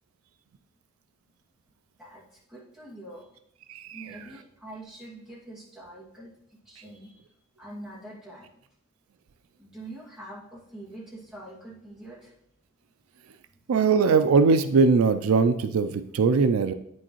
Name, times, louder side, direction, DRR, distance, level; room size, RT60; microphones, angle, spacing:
voice 1, 2.5-3.4 3.9-6.3 6.7-7.2 7.6-8.6 9.6-12.3 13.5-13.6, right 1 dB, 5° right, -7 dB, 2.1 m, -44 dB
voice 2, 3.7-4.0 13.7-16.7, right 4 dB, 80° right, 10 dB, 0.4 m, -21 dB
8.8 x 6.3 x 3.0 m, 0.77 s
head